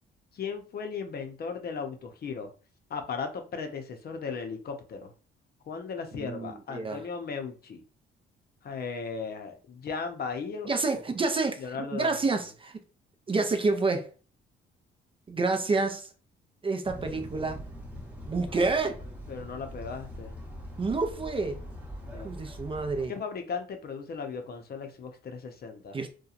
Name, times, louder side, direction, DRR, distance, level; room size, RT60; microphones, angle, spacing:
voice 1, 0.3-2.5 2.9-5.1 5.7-7.8 8.6-10.7 11.6-12.5 19.3-20.4 22.0-22.3 23.1-26.0, left 5 dB, 50° left, 0.6 m, -36 dB
voice 2, 6.2-7.0 10.7-11.6 11.9-12.8 13.3-14.1 15.3-16.1 16.6-17.6 18.3-19.0 20.8-21.6 22.2-23.1 25.9-26.1, right 3 dB, 25° right, 0.5 m, -28 dB
sound 1, 16.8-23.1, equal, 5° right, 0.9 m, -42 dB
2.8 x 2.2 x 2.4 m
cardioid pair, 90°, 20 cm